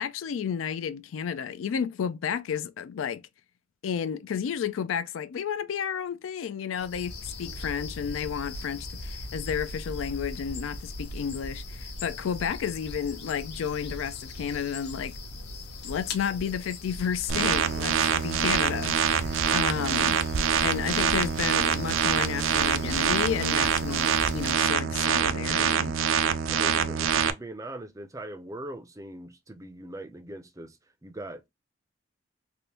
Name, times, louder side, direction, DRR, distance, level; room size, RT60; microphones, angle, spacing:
voice 1, 0.0-3.2 3.8-15.2 15.8-20.2 20.6-25.9, left 7 dB, 85° left, 0.4 m, -32 dB
sound 1, 6.8-24.5, left 2 dB, 55° left, 0.7 m, -40 dB
sound 2, 17.3-27.3, right 7 dB, 85° right, 0.4 m, -25 dB
voice 2, 26.5-31.4, right 1 dB, 15° right, 0.4 m, -41 dB
3.4 x 2.5 x 2.8 m
head